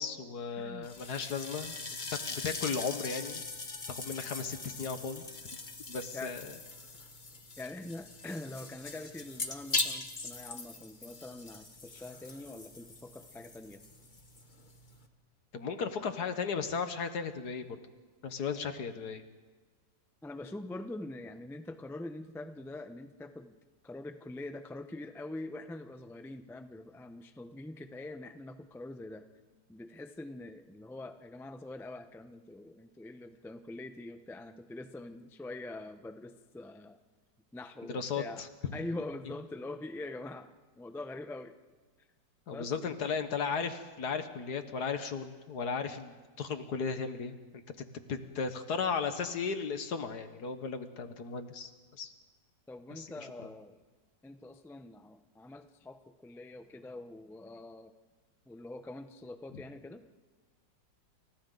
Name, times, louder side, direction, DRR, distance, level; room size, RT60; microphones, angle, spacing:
voice 1, 0.0-1.8 2.3-3.4 3.9-5.2 5.9-6.4 15.5-17.8 18.2-19.2 37.9-38.7 42.5-47.6 47.9-52.1 52.9-53.1 59.5-59.6, left 5 dB, 60° left, 8 dB, 1.8 m, -35 dB
voice 2, 0.5-0.9 6.1-6.3 7.6-13.8 16.0-16.1 20.2-23.6 23.8-29.2 29.7-37.0 37.5-38.4 38.7-41.5 42.5-43.0 52.7-53.7 54.2-57.9 58.5-60.0, left 2 dB, 5° left, 8 dB, 0.3 m, -44 dB
sound 1, 0.8-15.1, left 3 dB, 30° left, 1.4 m, -41 dB
29.5 x 27.5 x 4.0 m, 1.3 s
omnidirectional pair, 2.0 m